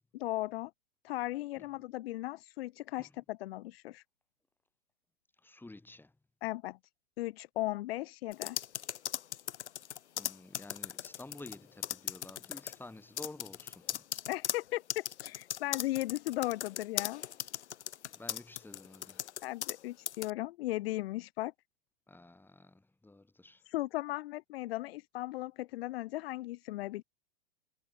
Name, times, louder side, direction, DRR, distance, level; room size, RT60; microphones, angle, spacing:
voice 1, 0.1-0.7 1.0-4.0 6.4-6.8 7.2-8.6 14.3-17.2 19.4-21.5 23.7-27.0, left 17 dB, 60° left, 2.4 m, -37 dB
voice 2, 5.4-6.1 10.2-14.0 18.2-19.2 22.1-23.6, left 2 dB, 5° left, 7.2 m, -50 dB
sound 1, 8.3-11.6 11.8-12.8 13.2-19.8 20.1-20.3, left 11 dB, 75° left, 1.5 m, -38 dB
hypercardioid pair, 115°, 35 cm